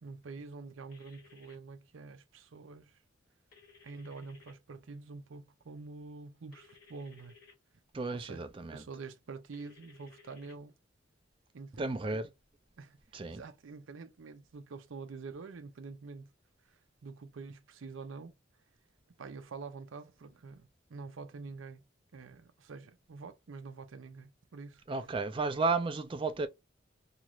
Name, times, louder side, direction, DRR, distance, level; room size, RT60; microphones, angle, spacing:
voice 1, 0.0-3.0 3.8-7.4 8.1-8.4 8.7-10.7 11.5-12.2 12.8-13.0 13.3-16.3 17.0-18.3 19.2-21.8 22.1-24.8, right 4 dB, 85° right, 0.5 m, -46 dB
sound 1, 0.9-1.5 3.5-4.5 6.5-7.5 9.5-10.5, left 5 dB, 50° left, 1.3 m, -59 dB
voice 2, 7.9-8.8 11.8-12.3 13.1-13.4 24.9-26.5, right 3 dB, 25° right, 0.3 m, -33 dB
2.9 x 2.4 x 3.0 m
head